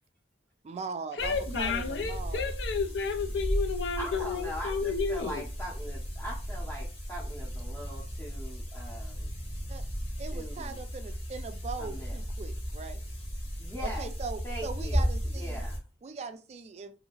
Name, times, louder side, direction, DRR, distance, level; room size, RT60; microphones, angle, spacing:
voice 1, 0.6-2.5 9.7-9.8 10.2-13.0 13.8-15.6 16.0-16.9, right 4 dB, 35° right, 0.3 m, -40 dB
voice 2, 1.2-5.4, left 5 dB, 70° left, 0.5 m, -31 dB
sound 1, 1.2-15.8, equal, 35° left, 0.9 m, -35 dB
voice 3, 4.0-9.3 10.3-10.9 11.8-12.2 13.6-14.1 14.4-15.1 15.3-15.8, equal, 15° left, 0.7 m, -41 dB
2.7 x 2.7 x 2.9 m
head